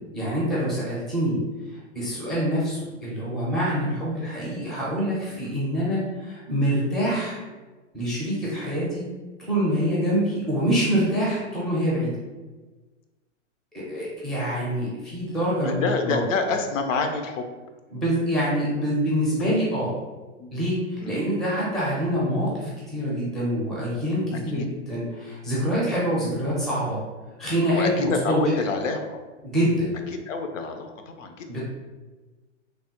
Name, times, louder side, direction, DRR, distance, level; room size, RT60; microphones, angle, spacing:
voice 1, 0.1-1.4 1.7-7.4 7.9-9.1 9.5-12.1 13.7-16.2 17.9-19.9 20.5-24.6 24.9-27.0 27.4-28.4 29.4-29.9 31.5-31.6, equal, ahead, -6 dB, 0.4 m, -25 dB
voice 2, 15.6-17.5 20.4-20.5 21.0-21.2 24.3-24.7 27.7-29.2 30.3-31.5, left 4 dB, 80° left, 5 dB, 0.6 m, -27 dB
3.2 x 2.1 x 2.8 m, 1.2 s
hypercardioid pair, 130°, 38 cm